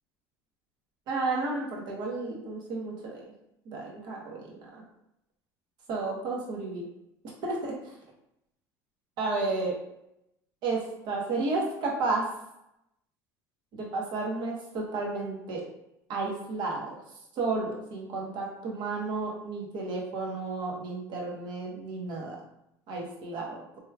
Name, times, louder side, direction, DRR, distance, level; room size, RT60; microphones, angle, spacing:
voice 1, 1.1-3.3 3.6-4.8 5.9-6.9 7.4-7.9 9.2-9.7 10.6-12.3 13.7-15.6 16.1-17.0 17.3-22.4 22.9-23.6, right 3 dB, 60° right, -2 dB, 1.1 m, -32 dB
3.5 x 3.0 x 2.3 m, 0.81 s
supercardioid pair, 100°, 8 cm